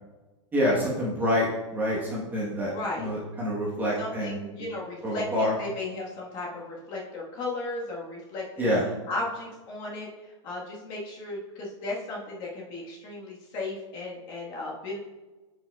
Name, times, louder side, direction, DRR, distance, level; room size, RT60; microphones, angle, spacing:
voice 1, 0.5-2.7 3.0-4.4 5.0-5.5 8.6-8.9, equal, 10° right, -5 dB, 1.0 m, -27 dB
voice 2, 2.7-3.1 4.0-8.7 9.1-15.0, left 2 dB, 30° left, -3 dB, 1.3 m, -35 dB
9.7 x 5.0 x 2.2 m, 1.2 s
supercardioid pair, 160°, 16 cm